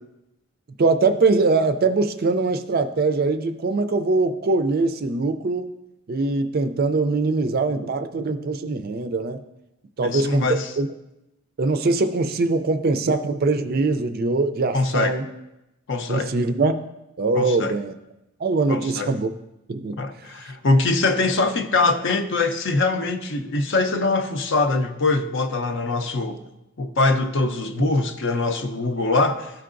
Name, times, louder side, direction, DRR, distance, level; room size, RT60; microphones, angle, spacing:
voice 1, 0.8-5.7 6.1-9.4 10.0-10.9 11.6-15.3 16.1-16.8 17.2-17.9 18.4-19.3 19.7-20.0, right 3 dB, 40° right, 8 dB, 0.4 m, -22 dB
voice 2, 10.0-10.7 14.7-15.2 15.9-16.3 17.3-17.8 18.7-19.1 20.0-26.4 26.8-29.5, left 3 dB, 55° left, 8 dB, 0.6 m, -23 dB
13.0 x 4.6 x 2.5 m, 0.93 s
head